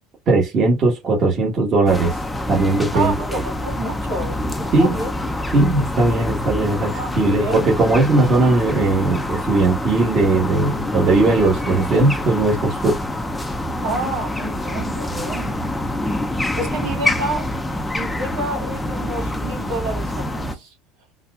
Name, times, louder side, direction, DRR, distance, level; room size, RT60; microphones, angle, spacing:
voice 1, 0.3-2.2 2.5-3.4 4.7-4.9 5.5-12.9, right 2 dB, 35° right, 1.3 m, -18 dB
sound 1, 1.9-20.5, left 1 dB, 5° left, 0.5 m, -26 dB
voice 2, 2.9-5.2 6.9-7.7 13.8-15.6 16.3-17.5 17.9-20.7, right 2 dB, 70° right, 2.1 m, -29 dB
4.1 x 2.3 x 2.4 m
cardioid pair, 135°, 0 cm